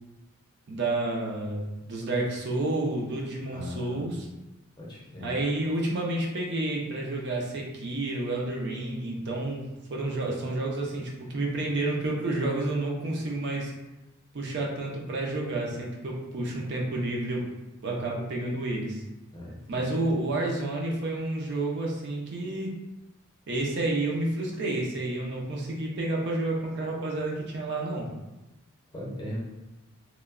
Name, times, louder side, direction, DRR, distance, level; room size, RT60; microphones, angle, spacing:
voice 1, 0.7-4.2 5.2-13.7 14.3-17.5 17.8-19.0 19.7-22.8 23.5-28.1, right 2 dB, 55° right, -1 dB, 0.5 m, -30 dB
voice 2, 3.5-4.2 4.8-5.4 19.3-20.1 28.9-29.4, left 1 dB, 20° left, -6 dB, 0.7 m, -39 dB
3.0 x 2.1 x 2.4 m, 0.98 s
head